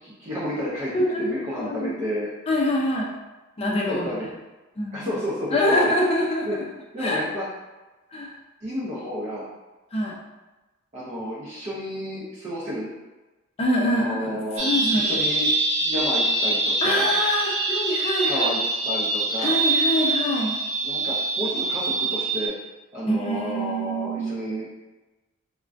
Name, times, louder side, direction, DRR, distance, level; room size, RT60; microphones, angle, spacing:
voice 1, 0.0-0.9 1.2-2.3 3.9-4.3 4.9-5.8 6.4-6.6 6.9-7.4 8.6-9.5 10.9-12.9 13.8-14.6 14.9-15.5 15.8-17.1 18.2-19.6 20.8-22.5 22.9-24.7, equal, 30° right, -9 dB, 0.6 m, -31 dB
voice 2, 0.9-1.3 1.6-1.9 2.5-3.1 3.6-4.1 4.8-5.1 5.5-6.6 7.0-7.2 8.1-8.3 9.9-10.2 13.6-14.3 14.5-15.0 16.8-18.5 19.4-20.5 23.1-24.4, left 1 dB, 30° left, -2 dB, 0.4 m, -24 dB
sound 1, 14.6-22.5, right 3 dB, 70° right, 0.7 m, -24 dB
3.5 x 2.2 x 2.5 m, 1.1 s
head